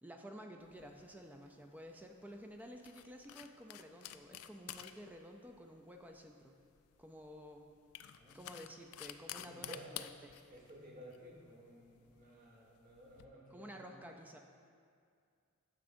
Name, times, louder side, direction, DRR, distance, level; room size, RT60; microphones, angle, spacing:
voice 1, 0.0-6.6 7.0-7.7 8.3-10.4 13.5-14.4, equal, 10° right, 3 dB, 0.3 m, -52 dB
sound 1, 0.6-13.3, left 12 dB, 80° left, 0.3 m, -52 dB
voice 2, 9.3-9.9 10.5-13.9, equal, 40° right, -4 dB, 1.5 m, -55 dB
9.7 x 6.9 x 2.6 m, 2.3 s
head